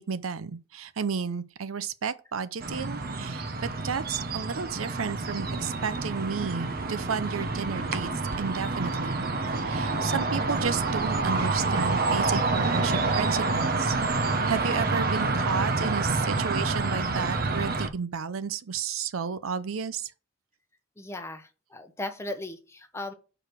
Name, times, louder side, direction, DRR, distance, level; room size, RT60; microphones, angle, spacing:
voice 1, 0.0-8.1 8.4-20.1, right 6 dB, 90° right, 0.6 m, -32 dB
sound 1, 2.6-17.9, right 3 dB, 45° right, 0.8 m, -28 dB
voice 2, 9.8-10.1 21.0-23.1, left 2 dB, 15° left, 0.9 m, -38 dB
4.9 x 4.8 x 6.1 m
head